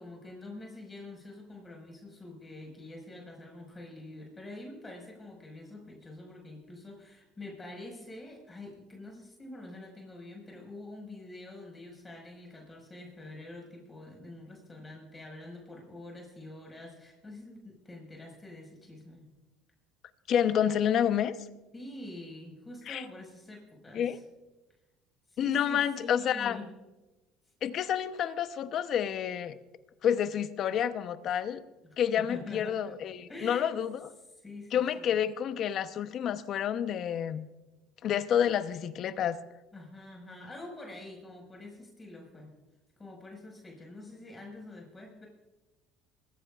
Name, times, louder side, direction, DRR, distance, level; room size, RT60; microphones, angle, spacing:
voice 1, 0.0-19.3 21.7-24.2 25.3-26.7 31.8-32.9 33.3-33.7 34.3-35.2 39.7-42.5 43.0-45.3, left 2 dB, 20° left, 0 dB, 5.6 m, -46 dB
voice 2, 20.3-21.3 22.9-23.0 23.9-24.2 25.4-26.6 27.6-29.6 30.0-31.6 32.0-34.1 34.7-37.5 38.0-39.4, left 9 dB, 55° left, 11 dB, 0.9 m, -29 dB
23.0 x 14.5 x 2.5 m, 1.1 s
supercardioid pair, 90°, 0 cm